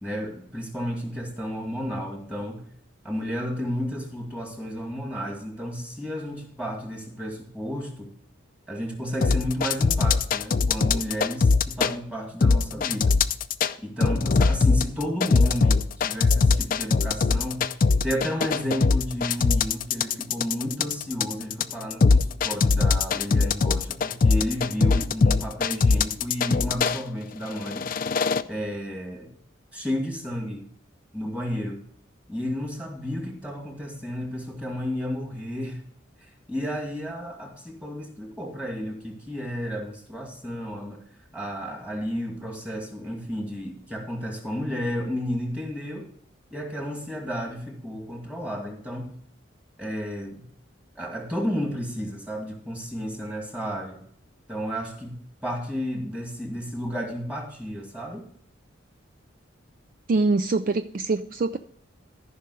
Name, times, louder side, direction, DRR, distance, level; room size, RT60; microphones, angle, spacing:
voice 1, 0.0-2.6 3.0-8.1 8.7-13.2 13.8-17.7 18.0-27.9 28.4-29.3 29.7-30.7 31.1-31.8 32.3-35.8 36.2-41.0 41.3-46.1 46.5-49.2 49.8-50.5 51.0-54.0 54.5-58.3, equal, 5° right, 1 dB, 2.2 m, -32 dB
sound 1, 9.2-11.9 12.4-13.7 14.0-27.0 27.6-28.4, left 4 dB, 45° left, 0.4 m, -21 dB
voice 2, 60.1-61.6, right 3 dB, 45° right, 10 dB, 0.3 m, -24 dB
14.0 x 5.7 x 4.9 m, 0.63 s
head